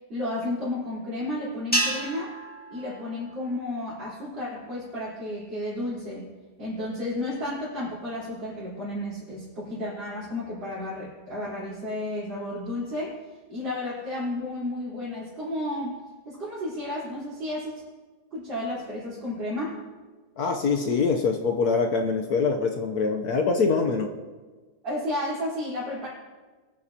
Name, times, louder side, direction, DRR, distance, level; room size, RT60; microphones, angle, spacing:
voice 1, 0.1-2.3 2.7-6.3 6.6-13.1 13.5-16.0 16.3-17.8 18.3-19.8 24.8-26.1, left 1 dB, 75° right, -10 dB, 4.6 m, -32 dB
sound 1, 1.7-4.2, right 1 dB, 5° left, 1.9 m, -31 dB
voice 2, 20.4-24.1, left 4 dB, 60° left, 3 dB, 1.3 m, -24 dB
23.5 x 9.3 x 2.9 m, 1.4 s
omnidirectional pair, 2.0 m